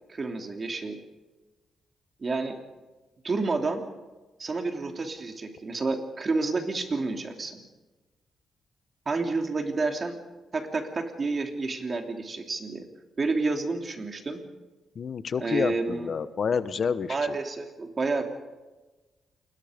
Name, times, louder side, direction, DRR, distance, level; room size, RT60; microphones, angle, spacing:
voice 1, 0.1-1.0 2.2-2.6 3.2-3.8 4.4-7.6 9.0-10.2 10.5-12.8 13.2-14.4 15.4-16.1 17.1-18.2, right 3 dB, 35° right, 4 dB, 3.2 m, -29 dB
voice 2, 14.9-17.4, left 6 dB, 50° left, 13 dB, 1.2 m, -29 dB
29.0 x 21.0 x 5.3 m, 1.2 s
cardioid pair, 105°, 0 cm